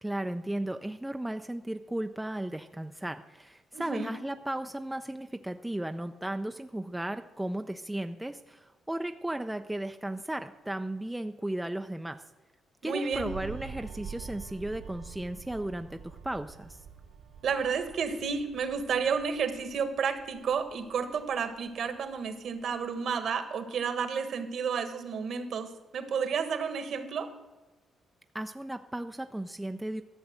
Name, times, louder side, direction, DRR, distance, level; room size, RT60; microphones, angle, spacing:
voice 1, 0.0-12.2 12.8-16.8 28.3-30.0, right 1 dB, 5° right, 7 dB, 0.4 m, -35 dB
voice 2, 3.7-4.1 12.8-13.3 17.4-27.3, right 6 dB, 55° right, 9 dB, 1.3 m, -31 dB
sound 1, 13.1-22.1 22.5-22.7, right 7 dB, 80° right, 3.0 m, -46 dB
13.0 x 7.2 x 7.9 m, 1.1 s
cardioid pair, 155°, 0 cm